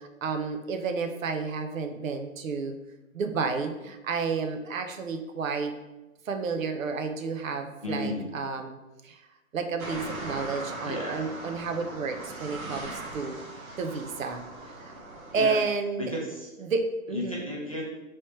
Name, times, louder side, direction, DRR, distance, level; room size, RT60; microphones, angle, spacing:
voice 1, 0.0-2.8 3.1-5.7 6.3-8.8 9.0-9.2 9.5-13.4 13.8-14.9 15.3-16.1 16.6-17.4, right 4 dB, 70° right, 6 dB, 0.6 m, -31 dB
voice 2, 7.8-8.3 10.8-11.4 15.3-15.6 16.0-16.5 17.1-17.8, left 1 dB, 25° left, -5 dB, 0.4 m, -33 dB
sound 1, 9.8-15.5, right 2 dB, 90° right, 0.9 m, -39 dB
3.2 x 3.0 x 3.0 m, 1.0 s
hypercardioid pair, 155°, 41 cm